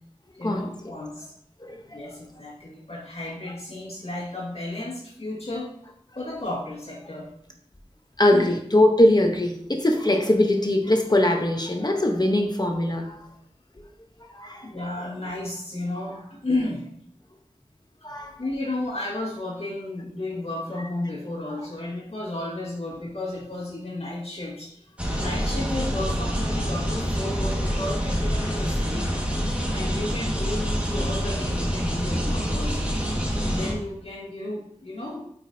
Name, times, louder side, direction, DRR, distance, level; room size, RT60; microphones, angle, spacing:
voice 1, 0.3-1.3 1.9-5.7 6.2-7.3 8.3-8.6 14.6-16.9 18.1-24.8 25.2-29.1 29.7-32.9 33.4-35.2, left 2 dB, 55° left, -5 dB, 1.9 m, -33 dB
voice 2, 1.6-2.1 8.2-13.3 14.3-14.7 18.0-18.3, left 1 dB, 35° left, 2 dB, 0.9 m, -21 dB
sound 1, 25.0-33.7, equal, 10° right, 1.6 m, -26 dB
8.5 x 5.1 x 2.7 m, 0.70 s
wide cardioid pair, 50°, 12 cm